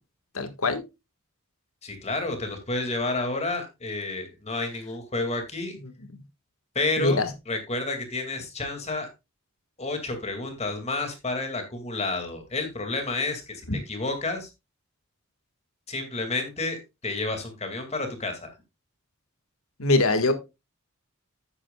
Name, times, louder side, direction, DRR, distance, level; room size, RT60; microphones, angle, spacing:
voice 1, 0.3-0.8 6.1-6.2 7.0-7.3 13.7-13.8 19.8-20.3, left 2 dB, 75° left, 1.6 m, -23 dB
voice 2, 1.8-5.8 6.7-9.1 9.8-13.6 13.9-14.5 15.9-16.8 17.0-18.5, left 2 dB, 30° left, 2.2 m, -30 dB
11.0 x 8.9 x 2.3 m
head